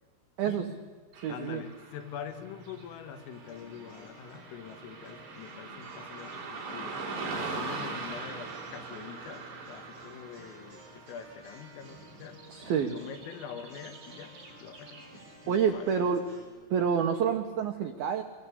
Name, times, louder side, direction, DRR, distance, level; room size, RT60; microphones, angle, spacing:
voice 1, 0.4-0.7 1.2-1.6 12.5-12.9 15.5-16.2 16.7-18.2, right 7 dB, 80° right, 5 dB, 2.1 m, -28 dB
Car passing by / Traffic noise roadway noise, 1.1-15.4, right 3 dB, 55° right, 5.8 m, -42 dB
voice 2, 1.3-7.0 7.3-12.4 12.9-15.1 15.5-16.1, left 8 dB, 80° left, 8 dB, 4.2 m, -45 dB
sound 1, 3.1-16.5, right 1 dB, 30° right, 7.9 m, -54 dB
24.0 x 20.5 x 8.3 m, 1.5 s
omnidirectional pair, 5.9 m